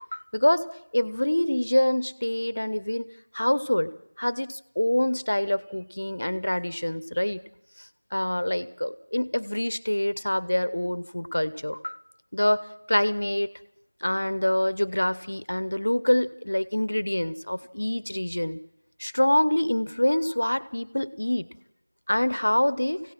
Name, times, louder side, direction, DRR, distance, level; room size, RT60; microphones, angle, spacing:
voice 1, 0.1-0.6 0.9-3.1 3.3-3.9 4.2-7.4 8.1-12.0 12.3-13.5 14.0-18.6 19.0-21.5 22.1-23.0, left 1 dB, 35° left, 17 dB, 0.8 m, -25 dB
24.5 x 17.0 x 7.6 m, 0.83 s
figure-of-eight pair, 180°, 0 cm